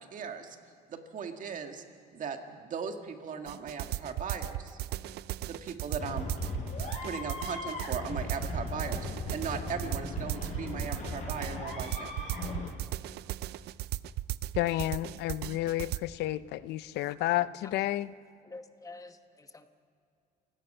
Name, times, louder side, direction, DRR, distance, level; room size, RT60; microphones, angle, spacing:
voice 1, 0.1-0.6 0.9-1.8 2.1-4.8 5.4-6.3 7.0-12.1, right 6 dB, 50° right, 5 dB, 2.0 m, -38 dB
sound 1, 3.5-16.0, right 15 dB, 75° right, 0.5 m, -36 dB
sound 2, 6.0-12.7, left 4 dB, 45° left, 5.8 m, -38 dB
voice 2, 14.6-18.1, left 15 dB, 80° left, 16 dB, 0.6 m, -31 dB
voice 3, 18.4-19.7, left 3 dB, 20° left, 8 dB, 1.1 m, -48 dB
28.5 x 17.0 x 5.6 m, 2.4 s
cardioid pair, 110°, 17 cm